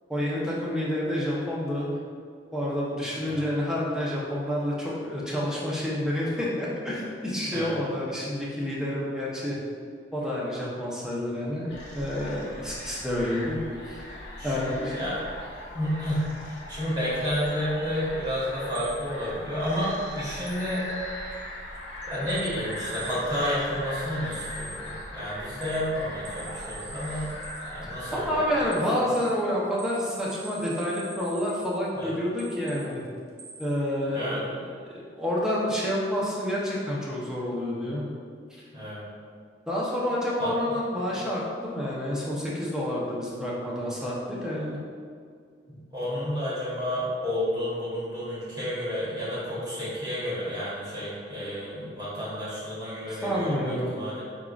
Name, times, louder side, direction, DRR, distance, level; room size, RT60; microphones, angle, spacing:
voice 1, 0.1-1.9 2.5-9.6 10.1-11.7 11.9-13.6 13.9-14.9 28.1-33.0 33.6-38.0 39.7-44.8 51.3-52.0 53.1-53.9, left 1 dB, 5° right, -6 dB, 0.6 m, -29 dB
voice 2, 7.4-7.7 14.4-15.2 15.7-20.9 22.1-27.3 27.7-28.7 29.0-29.1 31.9-32.2 34.1-34.4 38.7-39.0 40.4-40.5 45.7-54.2, equal, 20° right, -10 dB, 1.5 m, -31 dB
sound 1, 11.7-28.7, left 1 dB, 75° left, 1.0 m, -39 dB
sound 2, 17.3-17.6 18.4-18.5 18.7-21.4 21.8-23.3 24.3-24.9 25.6-27.8 28.7-31.9 32.4-33.0 33.4-33.8, right 3 dB, 65° right, 0.6 m, -45 dB
4.9 x 3.6 x 2.4 m, 2.2 s
head